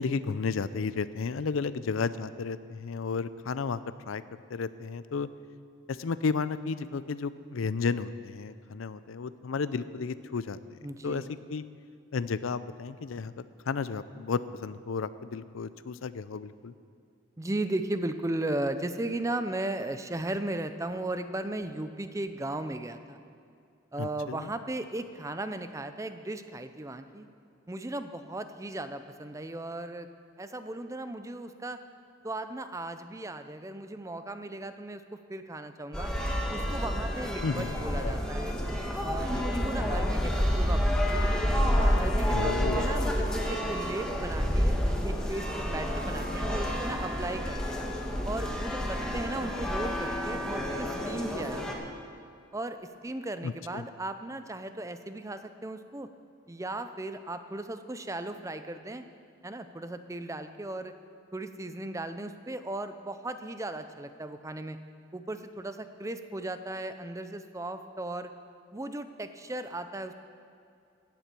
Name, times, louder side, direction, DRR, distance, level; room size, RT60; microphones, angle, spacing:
voice 1, 0.0-3.8 4.1-4.2 4.5-5.3 5.9-11.2 11.5-11.6 12.1-13.3 13.7-16.7 24.0-24.5 37.4-38.2 42.3-42.9 53.4-53.8, left 5 dB, 85° left, 14 dB, 0.5 m, -33 dB
voice 2, 10.8-11.3 17.4-23.2 23.9-27.3 27.7-30.1 30.4-31.8 32.2-36.1 36.5-38.6 39.0-41.2 41.8-47.8 48.3-51.9 52.5-56.1 56.5-59.1 59.4-60.9 61.3-64.8 65.1-68.3 68.7-70.1, right 2 dB, 15° right, 10 dB, 0.5 m, -36 dB
sound 1, 35.9-51.7, equal, 5° left, 1.3 m, -29 dB
17.0 x 7.4 x 6.8 m, 2.4 s
head